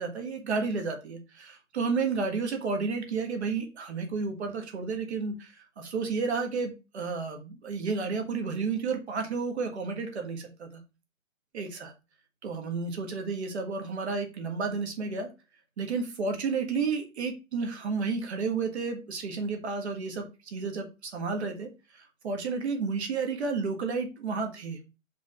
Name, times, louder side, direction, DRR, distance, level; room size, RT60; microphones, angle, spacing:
voice 1, 0.0-10.8 11.5-11.9 12.4-15.3 15.8-24.8, right 4 dB, 50° right, 4 dB, 1.6 m, -31 dB
5.0 x 3.7 x 5.4 m, 0.29 s
hypercardioid pair, 175°, 42 cm